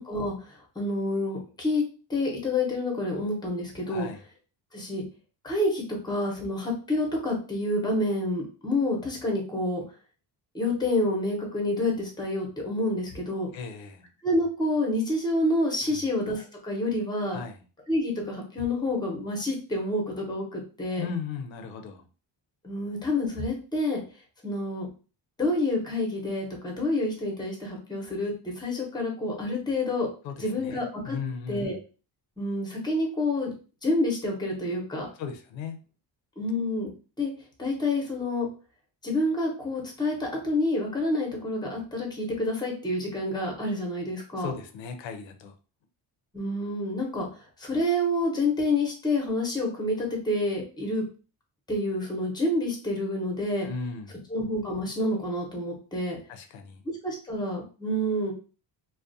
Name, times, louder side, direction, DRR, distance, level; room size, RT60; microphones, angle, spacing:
voice 1, 0.0-1.8 2.1-4.1 4.7-5.0 5.4-9.8 10.5-13.5 14.2-17.4 17.9-21.1 22.6-24.0 24.4-24.9 25.4-30.1 30.4-31.2 31.5-31.8 32.4-33.5 33.8-35.1 36.4-36.9 37.2-37.3 37.6-38.5 39.0-44.5 46.3-51.0 51.7-53.7 54.3-56.2 57.0-58.3, left 1 dB, 10° left, 0 dB, 0.7 m, -28 dB
voice 2, 3.9-4.2 13.5-14.0 15.8-16.1 17.3-17.6 21.0-22.0 30.2-31.7 35.2-35.8 44.4-45.5 53.6-54.2 56.3-56.8, left 5 dB, 90° left, 6 dB, 0.6 m, -37 dB
2.3 x 2.1 x 2.6 m, 0.35 s
cardioid pair, 125°, 44 cm